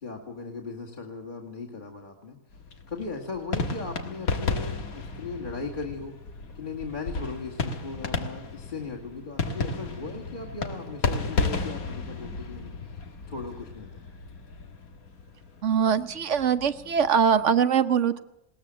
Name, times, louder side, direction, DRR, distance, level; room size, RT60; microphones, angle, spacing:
voice 1, 0.0-2.4 2.9-6.2 6.5-14.0, left 4 dB, 35° left, -2 dB, 2.3 m, -38 dB
sound 1, 2.5-17.6, left 4 dB, 90° left, 2.1 m, -34 dB
voice 2, 15.6-18.2, right 7 dB, 60° right, 12 dB, 1.2 m, -22 dB
20.5 x 18.5 x 7.6 m, 0.83 s
omnidirectional pair, 1.4 m